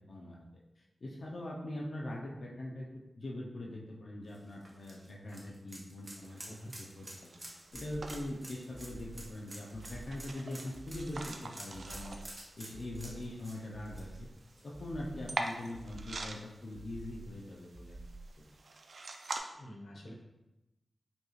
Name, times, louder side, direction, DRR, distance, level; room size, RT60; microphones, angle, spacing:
voice 1, 0.8-2.9 3.2-12.2 12.6-14.3 14.6-18.1 18.4-18.5, left 1 dB, 60° left, -4 dB, 0.6 m, -42 dB
sound 1, 4.3-15.1 15.4-15.5 17.0-17.1, right 1 dB, 25° right, 0.9 m, -50 dB
sound 2, 6.2-19.4, right 3 dB, 60° right, 0.4 m, -46 dB
sound 3, 7.7-8.3 8.7-9.3 9.7-10.3 10.7-11.3 11.7-12.3 12.7-13.3 13.7-14.3 14.7-15.3 15.7-16.3 16.7-17.3 17.7-18.3, right 2 dB, 85° right, 1.1 m, -49 dB
voice 2, 19.5-20.1, equal, 90° left, -1 dB, 0.8 m, -48 dB
5.2 x 2.4 x 3.1 m, 0.95 s
wide cardioid pair, 125°, 0 cm